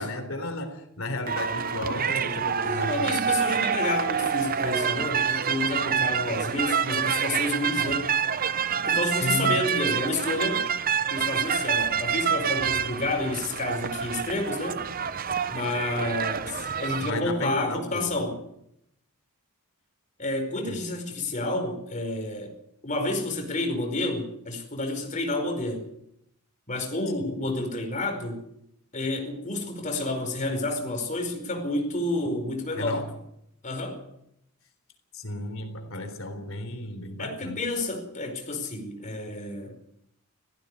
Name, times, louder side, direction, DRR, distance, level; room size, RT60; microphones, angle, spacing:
voice 1, 0.0-3.1 9.2-9.7 17.0-18.2 20.6-20.8 27.2-27.3 32.7-33.1 35.1-37.6, left 1 dB, 65° left, 3.7 m, -34 dB
sound 1, 1.3-17.1, right 7 dB, 40° right, 0.7 m, -27 dB
voice 2, 2.6-8.1 8.9-10.7 11.1-14.8 15.5-18.4 20.2-22.5 22.8-25.9 26.7-28.4 28.9-33.1 33.6-34.0 37.2-39.8, left 2 dB, 35° left, 4.9 m, -30 dB
18.0 x 15.5 x 9.7 m
head